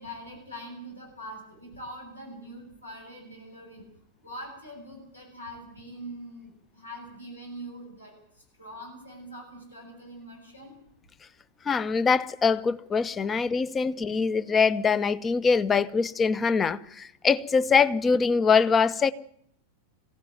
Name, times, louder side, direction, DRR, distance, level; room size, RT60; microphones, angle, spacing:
voice 1, 0.0-3.9 4.2-8.1 8.6-10.7 13.2-13.3, equal, 80° left, 8.0 m, -43 dB
voice 2, 11.6-19.1, left 5 dB, 20° left, 0.9 m, -23 dB
23.0 x 16.5 x 9.3 m
figure-of-eight pair, 90°, 0 cm